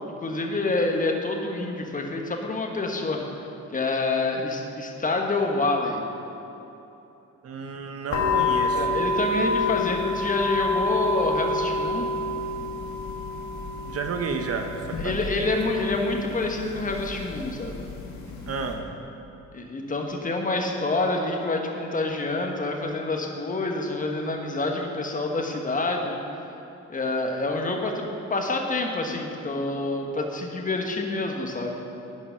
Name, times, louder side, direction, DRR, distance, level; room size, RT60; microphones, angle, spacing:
voice 1, 0.2-3.2 3.7-6.0 8.7-12.1 15.0-17.8 19.5-26.2 26.9-31.8, left 2 dB, 25° left, 2 dB, 1.2 m, -27 dB
voice 2, 7.4-9.0 13.9-14.7 15.0-15.5 18.5-18.8, right 5 dB, 50° right, 4 dB, 0.8 m, -31 dB
sound 1, 8.1-18.7, left 2 dB, 65° left, 1.6 m, -28 dB
10.5 x 5.3 x 5.6 m, 3.0 s
cardioid pair, 90°, 30 cm